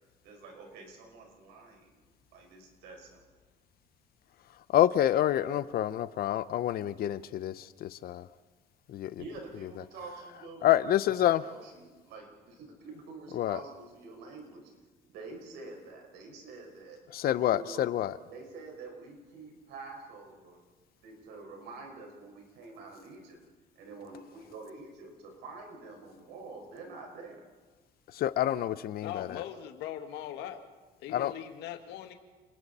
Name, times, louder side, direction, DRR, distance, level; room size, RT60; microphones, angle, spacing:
voice 1, 0.2-2.0 2.3-3.2 5.4-6.1 9.2-14.7 15.0-17.0 17.4-17.8 18.3-20.6 21.0-23.4 23.8-27.4, right 3 dB, 90° right, 1 dB, 5.6 m, -47 dB
voice 2, 4.7-8.3 8.9-9.2 10.6-11.4 13.3-13.6 17.1-18.1 28.1-29.4 31.1-31.3, left 12 dB, 65° left, 15 dB, 0.8 m, -27 dB
voice 3, 29.0-30.7 31.0-32.1, left 11 dB, 90° left, 6 dB, 1.9 m, -40 dB
29.5 x 21.0 x 4.3 m, 1.3 s
cardioid pair, 110°, 17 cm